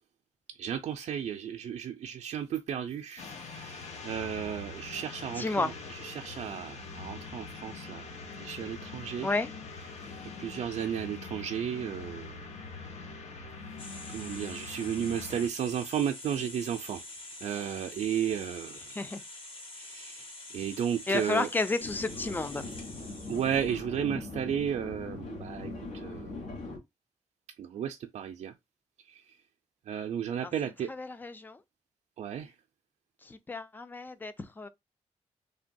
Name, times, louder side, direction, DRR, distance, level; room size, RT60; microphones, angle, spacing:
voice 1, 0.6-5.7 6.0-8.0 8.4-9.3 10.2-12.4 14.1-17.0 17.4-19.0 19.8-20.3 20.5-21.5 23.3-26.4 27.6-28.5 29.1-29.2 29.9-30.9 32.2-32.5, right 9 dB, 70° right, 0.4 m, -34 dB
sound 1, 3.2-15.5, left 4 dB, 70° left, 0.8 m, -43 dB
voice 2, 5.3-5.7 9.2-9.5 18.9-19.2 21.1-22.7 30.4-31.6 33.2-34.7, left 3 dB, 15° left, 0.4 m, -32 dB
sound 2, 13.8-23.8, left 2 dB, 50° left, 1.0 m, -46 dB
sound 3, 21.8-26.8, left 2 dB, 85° left, 1.2 m, -40 dB
3.2 x 2.2 x 2.5 m
wide cardioid pair, 145°, 12 cm